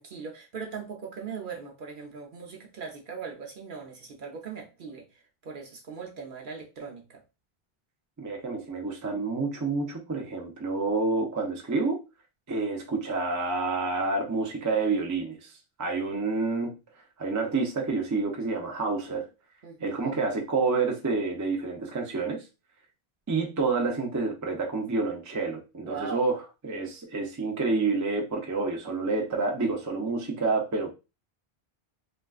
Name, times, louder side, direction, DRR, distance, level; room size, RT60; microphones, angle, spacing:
voice 1, 0.0-7.2 19.6-20.2 25.8-26.2, right 5 dB, 60° right, 0.7 m, -40 dB
voice 2, 8.2-12.0 12.5-15.5 15.8-16.7 17.2-19.3 19.8-22.4 23.3-26.4 26.6-30.9, right 3 dB, 25° right, 0.4 m, -28 dB
3.5 x 2.3 x 2.3 m
omnidirectional pair, 1.1 m